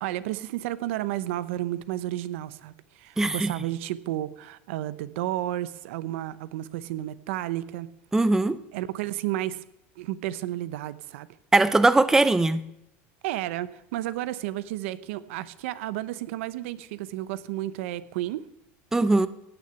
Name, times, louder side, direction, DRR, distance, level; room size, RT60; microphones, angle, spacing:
voice 1, 0.0-7.9 8.7-9.6 10.0-11.3 13.2-18.4, right 14 dB, 80° right, 15 dB, 0.8 m, -32 dB
voice 2, 3.2-3.5 8.1-8.6 11.5-12.6 18.9-19.3, right 2 dB, 5° right, 13 dB, 0.6 m, -20 dB
17.0 x 6.6 x 9.7 m, 0.82 s
supercardioid pair, 135°, 7 cm